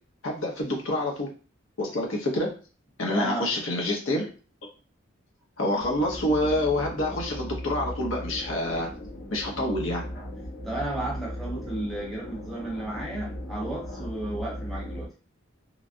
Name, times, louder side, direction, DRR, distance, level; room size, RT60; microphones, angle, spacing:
voice 1, 0.2-1.3 1.8-2.5 3.0-4.3 5.6-8.9 9.3-10.0, left 1 dB, 80° left, -1 dB, 0.9 m, -27 dB
voice 2, 3.1-3.5 10.6-15.1, right 1 dB, ahead, -5 dB, 0.9 m, -33 dB
sound 1, 5.8-15.1, equal, 50° left, 0.9 m, -37 dB
3.1 x 2.4 x 2.6 m, 0.37 s
head